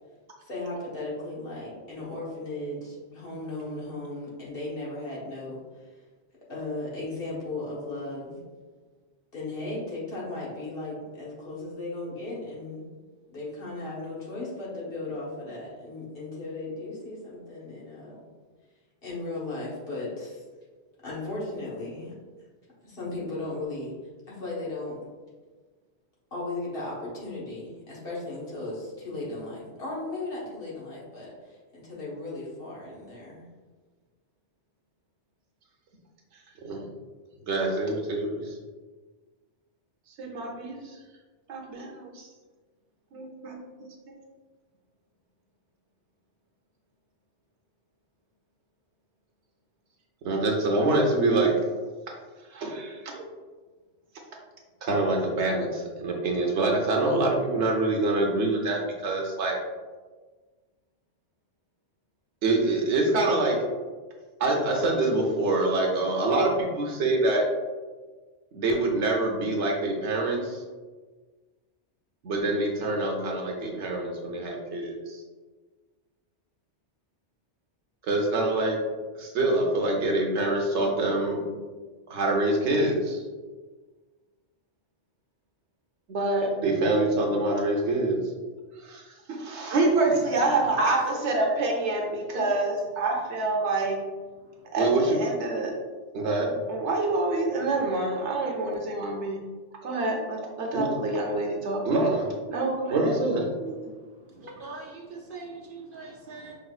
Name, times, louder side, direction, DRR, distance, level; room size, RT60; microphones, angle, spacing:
voice 1, 0.4-5.9 6.5-8.4 9.3-12.9 13.3-18.2 19.0-20.4 21.0-22.1 22.8-23.9 24.3-25.0 26.3-33.5, left 2 dB, 55° left, -6 dB, 1.4 m, -36 dB
voice 2, 36.3-36.9 37.4-38.6 40.1-41.0 41.5-42.3 43.1-43.6 44.1-44.2 50.2-51.5 52.1-53.2 54.8-59.6 62.4-63.6 64.4-67.4 68.5-70.6 72.2-75.2 78.0-78.8 79.1-81.4 82.1-83.2 86.1-88.3 88.7-94.0 94.7-95.7 96.1-99.4 99.8-103.8, right 2 dB, 80° right, 0 dB, 1.1 m, -26 dB
voice 3, 90.8-91.2 92.3-92.5 104.3-106.6, right 1 dB, 55° right, -1 dB, 0.7 m, -35 dB
5.6 x 3.5 x 2.4 m, 1.4 s
omnidirectional pair, 1.2 m